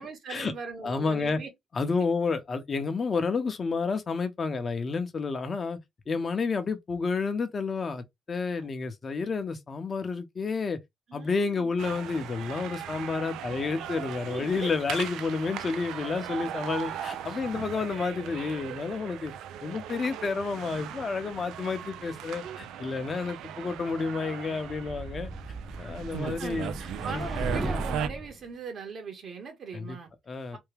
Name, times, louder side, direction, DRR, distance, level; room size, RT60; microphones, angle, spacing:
voice 1, 0.0-1.5 8.5-8.6 11.1-11.7 14.2-14.7 17.3-17.4 22.4-22.6 26.2-30.1 30.5-30.6, right 5 dB, 55° right, 1.4 m, -40 dB
voice 2, 0.8-1.4 1.7-5.8 6.1-10.8 11.1-19.3 19.6-25.3 25.8-26.7 27.1-27.3 29.7-30.0 30.3-30.6, left 4 dB, 40° left, 0.8 m, -30 dB
sound 1, 11.8-28.1, right 10 dB, 90° right, 0.4 m, -38 dB
sound 2, 24.6-28.3, right 1 dB, 15° right, 0.7 m, -36 dB
3.4 x 2.2 x 3.3 m
cardioid pair, 90°, 0 cm